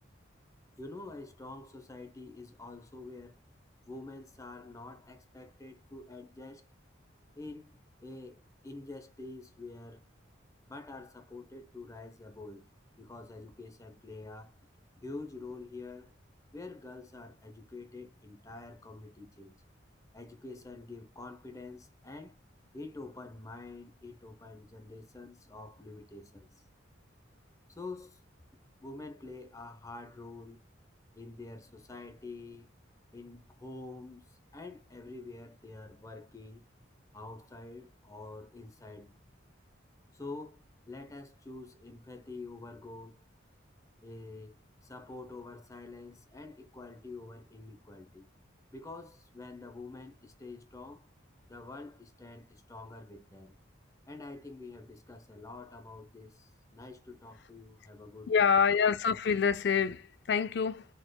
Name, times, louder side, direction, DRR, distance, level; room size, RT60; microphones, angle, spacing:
voice 1, 0.8-3.3 3.9-6.6 7.4-7.7 8.0-10.1 10.7-12.7 13.0-14.5 15.0-16.1 16.5-19.6 20.1-22.4 22.7-26.6 27.7-28.2 28.8-30.6 31.2-32.7 33.1-36.6 37.1-39.2 40.1-43.3 44.0-44.6 44.8-48.3 48.7-51.1 51.5-53.6 54.1-58.4, left 2 dB, 15° left, 0.7 m, -47 dB
voice 2, 58.3-60.9, left 6 dB, 55° left, 0.4 m, -26 dB
4.8 x 4.3 x 2.2 m
head